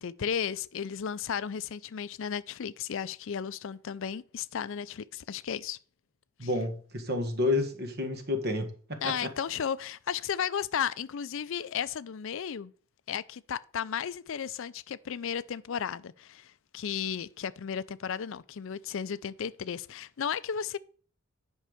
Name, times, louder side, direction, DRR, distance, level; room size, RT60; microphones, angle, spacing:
voice 1, 0.0-5.8 6.4-6.5 9.0-12.7 13.1-20.8, left 7 dB, 60° left, 0.4 m, -34 dB
voice 2, 6.4-9.3, left 2 dB, 45° right, 1.6 m, -30 dB
10.0 x 5.5 x 4.9 m
head